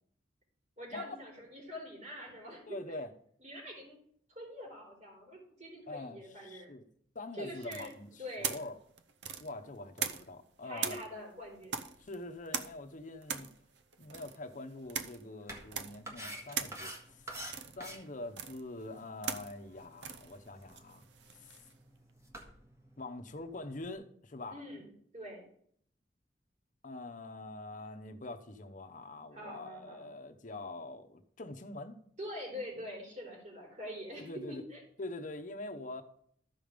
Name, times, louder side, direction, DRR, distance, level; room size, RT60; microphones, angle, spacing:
voice 1, 0.8-2.9 3.4-4.0 4.4-6.8 7.3-8.6 10.6-11.8 24.5-25.4 29.3-30.0 32.2-34.8, equal, 40° right, 3.7 m, -45 dB
voice 2, 2.7-3.1 5.9-6.8 7.1-8.8 9.4-11.0 12.0-13.5 14.0-17.3 17.8-21.0 21.4-21.6 23.0-24.6 26.8-32.0 34.2-34.6 35.0-36.0, left 2 dB, 45° left, 0.9 m, -44 dB
sound 1, 7.6-10.4 10.8-21.7, right 7 dB, 80° right, 0.7 m, -41 dB
sound 2, 15.4-23.9, right 1 dB, 15° right, 1.7 m, -50 dB
13.0 x 5.2 x 5.1 m
head